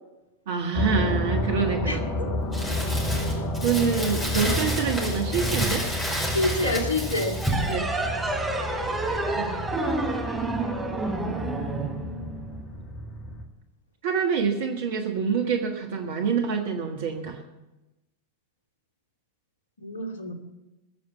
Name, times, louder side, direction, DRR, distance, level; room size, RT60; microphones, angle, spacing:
voice 1, 0.5-2.0 3.6-6.3 7.5-7.9 9.3-9.6 11.2-12.6 14.0-17.4, right 6 dB, 55° right, 3 dB, 1.5 m, -27 dB
sound 1, 0.7-13.4, left 1 dB, 40° left, 1.9 m, -31 dB
voice 2, 1.9-2.3 6.3-7.4 19.8-20.3, left 2 dB, 65° left, 4 dB, 2.4 m, -27 dB
Crumpling crinkling, 2.5-7.7, equal, 15° left, 5.3 m, -30 dB
sound 2, 7.4-12.6, right 2 dB, 10° right, 3.0 m, -29 dB
21.5 x 7.3 x 7.2 m, 1.0 s
figure-of-eight pair, 90°, 0 cm